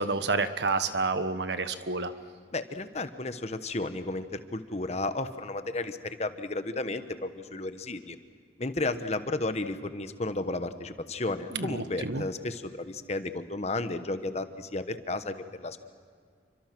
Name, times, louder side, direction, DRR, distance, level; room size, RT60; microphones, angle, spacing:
voice 1, 0.0-2.1 11.5-12.2, right 3 dB, 75° right, 10 dB, 1.4 m, -29 dB
voice 2, 2.5-8.2 8.6-15.8, left 2 dB, 40° left, 10 dB, 1.2 m, -33 dB
29.0 x 25.0 x 6.2 m, 2.1 s
head